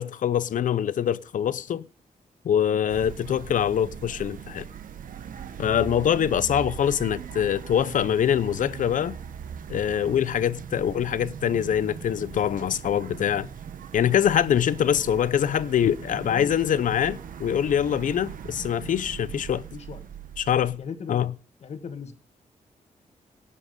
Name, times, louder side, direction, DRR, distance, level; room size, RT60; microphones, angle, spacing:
voice 1, 0.0-1.8 2.4-4.7 5.6-9.2 9.7-13.5 13.9-19.6 20.4-20.8 21.1-21.3, left 9 dB, 70° left, 0.7 m, -24 dB
sound 1, 2.9-20.8, right 8 dB, 80° right, 1.1 m, -40 dB
voice 2, 16.0-17.2 19.7-20.0 20.8-21.2 21.6-22.1, left 6 dB, 50° left, 1.6 m, -39 dB
17.5 x 7.6 x 5.2 m
wide cardioid pair, 175°, 14 cm